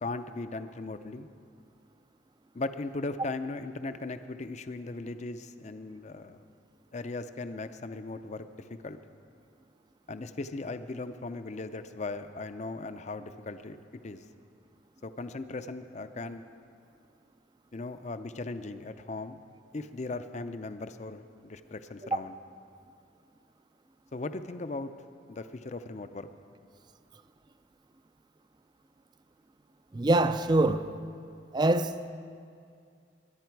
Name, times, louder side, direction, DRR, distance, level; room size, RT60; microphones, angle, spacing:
voice 1, 0.0-1.3 2.5-6.4 6.9-9.0 10.1-13.8 14.0-14.2 15.0-16.4 17.7-19.4 19.7-22.4 24.1-24.9 25.3-26.3, left 3 dB, 35° left, 0.5 m, -38 dB
voice 2, 29.9-30.9 31.5-32.1, right 2 dB, 20° right, 0.4 m, -24 dB
22.0 x 11.0 x 4.6 m
head